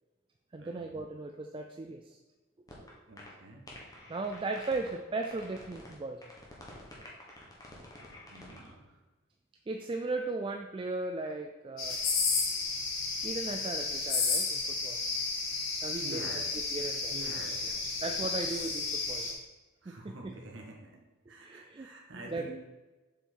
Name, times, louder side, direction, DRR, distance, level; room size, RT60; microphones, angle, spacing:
voice 1, 0.5-2.2 4.1-6.2 9.7-12.0 13.2-15.0 15.8-16.2 16.7-17.2 18.0-19.4 19.9-20.3 21.4-21.9 22.1-22.5, right 3 dB, 25° right, 5 dB, 0.3 m, -37 dB
sound 1, 2.7-2.9 3.2-3.3 3.7-4.9 5.2-5.9 6.2-8.7, left 1 dB, 20° left, 1.5 m, -49 dB
voice 2, 3.1-3.7 8.2-8.9 15.0-15.1 15.9-16.5 17.1-18.2 19.8-22.5, right 2 dB, 65° right, 0 dB, 1.5 m, -47 dB
sound 2, 11.8-19.3, left 4 dB, 80° left, 1.9 m, -32 dB
7.2 x 5.5 x 4.5 m, 1.2 s
head